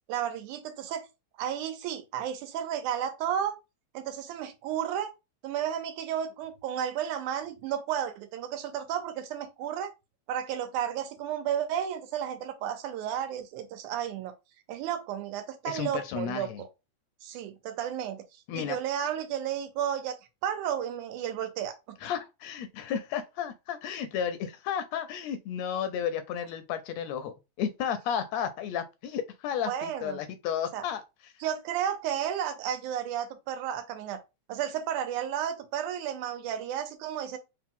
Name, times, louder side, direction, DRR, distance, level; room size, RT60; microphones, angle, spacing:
voice 1, 0.1-1.0 1.4-3.6 3.9-5.1 5.4-9.9 10.3-14.3 14.7-16.7 17.2-18.2 18.5-20.2 20.4-21.8 29.7-30.2 30.7-30.8 31.4-34.2 34.5-37.4, right 9 dB, 90° right, 2.3 m, -32 dB
voice 2, 15.6-16.6 18.5-18.8 22.0-31.3, left 8 dB, 80° left, 1.6 m, -33 dB
4.7 x 3.1 x 3.6 m
omnidirectional pair, 3.4 m